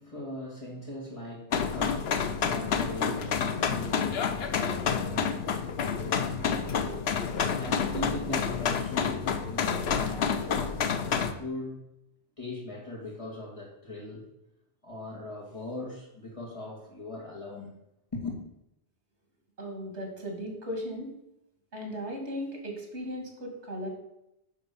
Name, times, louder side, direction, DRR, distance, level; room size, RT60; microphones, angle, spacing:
voice 1, 0.0-5.6 5.8-7.0 7.5-11.8 12.4-14.3 14.8-17.7 18.1-18.4, left 1 dB, 30° left, -3 dB, 2.5 m, -40 dB
sound 1, 1.5-11.3, left 6 dB, 70° left, 0.9 m, -29 dB
voice 2, 19.6-21.1 21.7-23.9, equal, 75° right, 2 dB, 2.7 m, -36 dB
10.0 x 3.9 x 6.9 m, 0.85 s
omnidirectional pair, 1.2 m